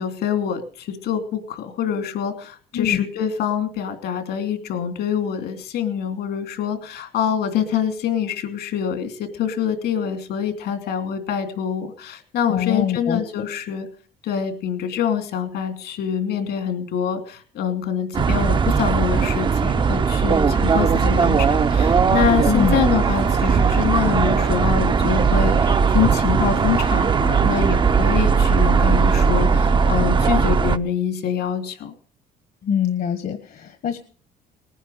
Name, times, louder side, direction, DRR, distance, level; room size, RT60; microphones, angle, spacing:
voice 1, 0.0-13.9 14.2-31.9, left 8 dB, 75° left, 7 dB, 3.0 m, -25 dB
voice 2, 2.7-3.0 12.5-13.4 22.4-22.7 32.6-34.0, left 8 dB, 60° left, 9 dB, 1.4 m, -24 dB
sound 1, 18.1-30.8, right 5 dB, 30° right, 0.7 m, -18 dB
sound 2, 20.5-28.7, right 9 dB, 75° right, 1.4 m, -37 dB
19.0 x 10.0 x 6.6 m, 0.43 s
cardioid pair, 110°, 17 cm